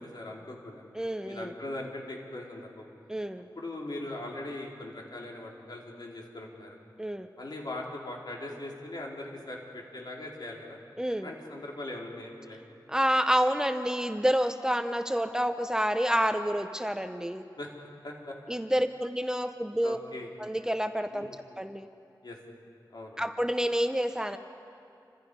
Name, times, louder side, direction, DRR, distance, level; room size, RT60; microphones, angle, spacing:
voice 1, 0.0-0.8 1.2-2.9 3.6-6.8 7.4-10.8 11.2-12.6 17.6-17.7 18.0-18.3 19.8-20.3 21.1-21.4 22.2-22.4 22.9-23.2, left 1 dB, 65° left, -2 dB, 4.0 m, -40 dB
voice 2, 0.9-1.5 3.1-3.5 7.0-7.3 11.0-11.3 12.9-17.4 18.5-20.0 20.4-21.3 21.6-21.9 23.2-24.4, equal, 10° right, 8 dB, 0.8 m, -28 dB
28.5 x 25.5 x 5.4 m, 2.5 s
wide cardioid pair, 85°, 8 cm